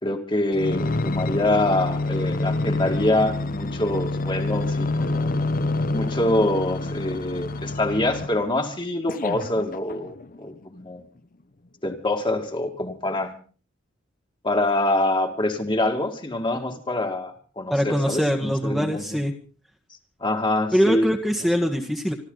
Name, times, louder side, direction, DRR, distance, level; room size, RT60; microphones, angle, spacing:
voice 1, 0.0-5.3 5.9-11.0 11.8-13.3 14.4-19.2 20.2-21.1, left 1 dB, 25° left, 4 dB, 2.2 m, -25 dB
sound 1, 0.5-8.5 9.1-10.4 11.0-11.1, left 2 dB, 45° left, 0.9 m, -27 dB
voice 2, 17.7-19.3 20.7-22.1, equal, ahead, 2 dB, 1.5 m, -23 dB
26.0 x 13.0 x 4.0 m, 0.39 s
head